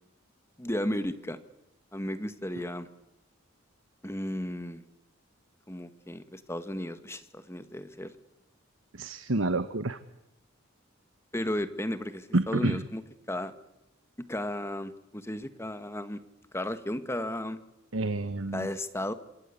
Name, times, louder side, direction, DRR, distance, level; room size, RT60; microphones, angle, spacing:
voice 1, 0.6-1.4 1.9-2.9 4.0-4.8 5.7-8.1 11.3-13.5 14.2-16.2 16.5-17.6 18.5-19.1, left 1 dB, 15° left, 11 dB, 1.5 m, -34 dB
voice 2, 8.9-10.0 12.3-12.8 17.9-18.7, right 2 dB, 80° right, 11 dB, 1.2 m, -28 dB
26.0 x 26.0 x 8.4 m, 0.88 s
head